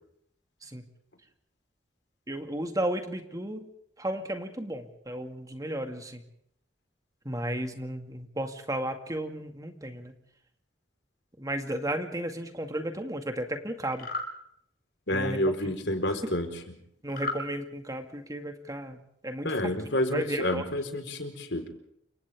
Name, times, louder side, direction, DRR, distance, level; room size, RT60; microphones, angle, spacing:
voice 1, 2.3-3.7 4.0-6.2 7.3-10.1 11.4-14.1 15.1-15.4 16.2-16.3 17.0-19.7 20.1-20.6, right 1 dB, 20° right, 5 dB, 2.2 m, -34 dB
sound 1, 13.9-14.3 17.1-17.4, left 2 dB, 55° left, 5.9 m, -33 dB
voice 2, 15.1-16.5 19.4-21.7, left 1 dB, 70° left, 5 dB, 4.4 m, -29 dB
29.5 x 26.5 x 3.7 m, 0.71 s
head